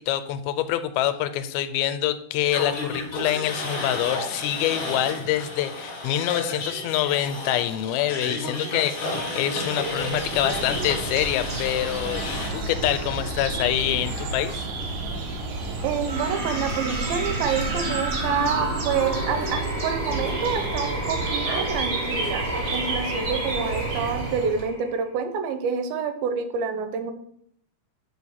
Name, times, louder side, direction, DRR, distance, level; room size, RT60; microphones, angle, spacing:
voice 1, 0.0-14.7, left 12 dB, 90° left, 11 dB, 2.4 m, -26 dB
sound 1, 2.5-12.5, left 2 dB, 55° left, 1.8 m, -32 dB
sound 2, 9.8-24.7, right 3 dB, 60° right, 1.9 m, -30 dB
voice 2, 15.8-27.1, right 6 dB, 85° right, 8 dB, 2.5 m, -28 dB
sound 3, 16.0-25.1, right 1 dB, 15° left, 1.5 m, -32 dB
6.3 x 4.6 x 5.6 m, 0.69 s
omnidirectional pair, 4.3 m